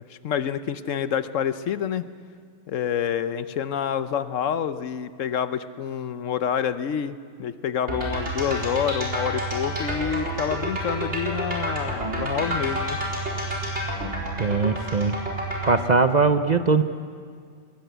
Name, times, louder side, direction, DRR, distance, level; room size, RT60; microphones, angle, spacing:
voice 1, 0.1-2.1 2.7-13.0, left 8 dB, 75° left, 12 dB, 1.1 m, -27 dB
sound 1, 7.9-15.8, right 1 dB, 60° right, 4.4 m, -29 dB
voice 2, 14.4-15.2 15.7-16.8, right 4 dB, 40° right, 9 dB, 0.7 m, -20 dB
21.5 x 20.0 x 8.1 m, 2.1 s
omnidirectional pair, 1.3 m